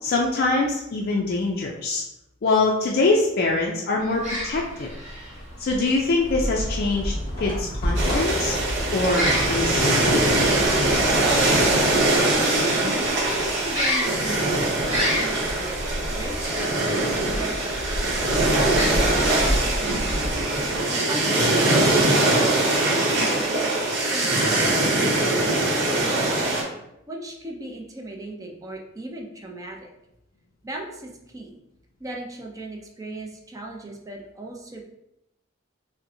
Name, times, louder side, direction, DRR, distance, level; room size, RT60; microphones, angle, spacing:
voice 1, 0.0-2.0 2.4-4.9 5.6-8.6 8.9-10.3, left 3 dB, 50° left, -1 dB, 0.4 m, -24 dB
sound 1, 4.0-20.8, equal, 35° right, 1.4 m, -31 dB
sound 2, 6.2-12.0, equal, 25° left, 1.0 m, -30 dB
sound 3, 7.9-26.6, right 2 dB, 60° right, 0.9 m, -22 dB
voice 2, 11.7-12.7 13.3-15.8 16.1-17.8 18.3-20.2 21.1-22.2 22.9-23.7 24.0-29.9 30.6-31.5 32.0-34.8, right 1 dB, 15° right, 0 dB, 0.5 m, -37 dB
5.2 x 2.1 x 2.7 m, 0.84 s
head